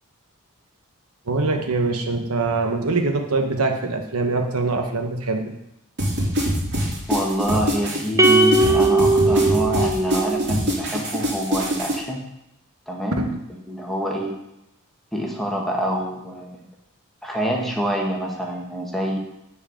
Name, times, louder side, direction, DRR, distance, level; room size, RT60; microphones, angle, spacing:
voice 1, 1.3-5.5 13.2-13.4, right 3 dB, 80° right, 4 dB, 1.2 m, -23 dB
sound 1, 6.0-12.0, equal, 55° right, 3.2 m, -24 dB
voice 2, 7.1-12.2 12.9-13.3 13.7-14.3 15.1-16.7 17.2-19.2, equal, ahead, -1 dB, 1.4 m, -26 dB
sound 2, 8.2-10.7, right 2 dB, 15° right, 0.5 m, -18 dB
8.8 x 4.7 x 7.0 m, 0.87 s
head